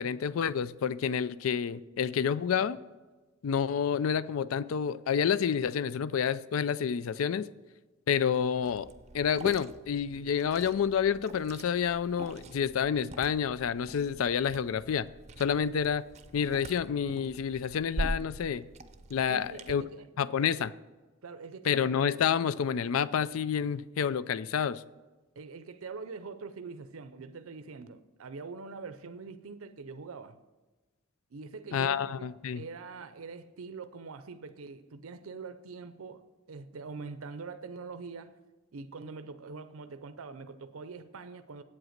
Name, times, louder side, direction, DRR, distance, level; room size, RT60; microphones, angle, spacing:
voice 1, 0.0-2.8 3.4-7.5 8.1-8.9 9.1-15.1 15.4-16.0 16.3-18.6 19.1-19.8 20.2-20.7 21.7-24.8 31.7-32.6, left 7 dB, 75° left, 0.4 m, -29 dB
Liquid, 8.6-19.7, right 2 dB, 35° right, 0.6 m, -43 dB
voice 2, 19.3-20.1 20.4-20.6 21.2-21.9 25.4-30.4 31.3-38.4 38.7-41.6, right 4 dB, 85° right, 0.6 m, -44 dB
8.4 x 7.8 x 6.5 m
head